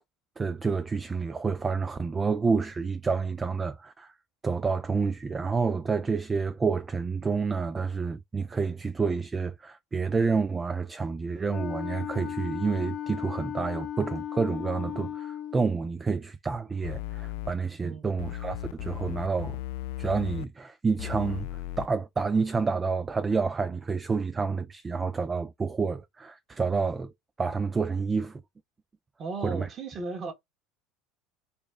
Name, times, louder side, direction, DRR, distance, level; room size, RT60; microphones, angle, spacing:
voice 1, 0.4-4.1 4.4-19.6 20.0-27.1 27.4-28.4 29.4-29.7, right 4 dB, 20° right, 0.4 m, -29 dB
Wind instrument woodwind instrument, 11.5-15.7, left 10 dB, 55° left, 0.7 m, -36 dB
sound 1, 16.8-17.5 18.2-20.5 21.0-21.9, left 15 dB, 75° left, 0.3 m, -36 dB
voice 2, 29.2-30.3, right 4 dB, 40° right, 1.4 m, -35 dB
4.0 x 2.3 x 3.4 m
hypercardioid pair, 90°, 0 cm